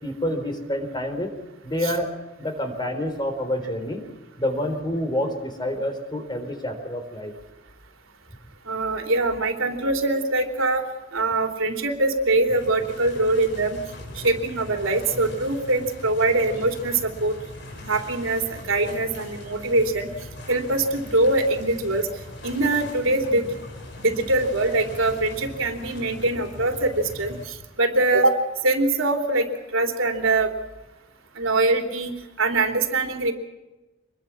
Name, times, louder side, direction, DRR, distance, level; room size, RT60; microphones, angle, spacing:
voice 1, 0.0-1.3 1.6-2.1 2.4-4.0 4.4-7.3, left 1 dB, 20° left, 7 dB, 3.8 m, -28 dB
voice 2, 8.7-13.8 14.1-17.3 17.8-20.1 20.5-22.1 22.4-23.5 24.0-29.5 29.7-30.5 31.4-33.3, right 2 dB, 75° right, 3 dB, 3.3 m, -23 dB
sound 1, 12.5-27.5, left 1 dB, 60° left, 5.9 m, -40 dB
26.5 x 22.0 x 6.1 m, 1.1 s
head